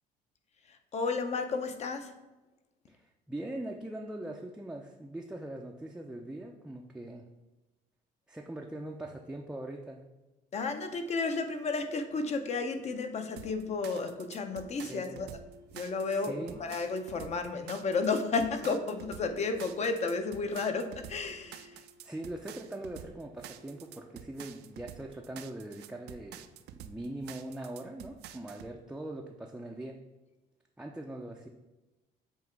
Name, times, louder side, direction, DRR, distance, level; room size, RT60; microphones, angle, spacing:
voice 1, 0.7-2.1 10.5-15.4 15.7-21.8, left 4 dB, 40° left, 7 dB, 0.7 m, -32 dB
voice 2, 2.9-7.2 8.3-10.0 14.8-15.2 16.1-16.6 21.7-26.5 26.8-30.0 30.8-31.5, right 1 dB, 5° right, 0 dB, 0.4 m, -41 dB
sound 1, 11.3-24.1, equal, 75° left, 1.4 m, -59 dB
sound 2, 13.4-28.7, right 11 dB, 75° right, 0.4 m, -49 dB
7.1 x 2.9 x 4.6 m, 1.1 s
cardioid pair, 110°, 17 cm